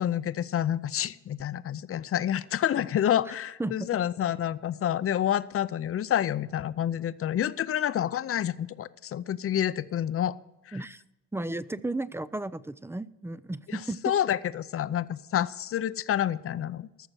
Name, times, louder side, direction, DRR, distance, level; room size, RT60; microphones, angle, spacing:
voice 1, 0.0-10.3 10.7-10.8 13.7-13.8 14.0-17.1, left 10 dB, 50° left, 16 dB, 0.6 m, -28 dB
voice 2, 10.7-11.0 11.3-14.0, right 2 dB, 10° right, 17 dB, 0.4 m, -34 dB
14.0 x 6.7 x 7.5 m, 0.98 s
cardioid pair, 90°, 30 cm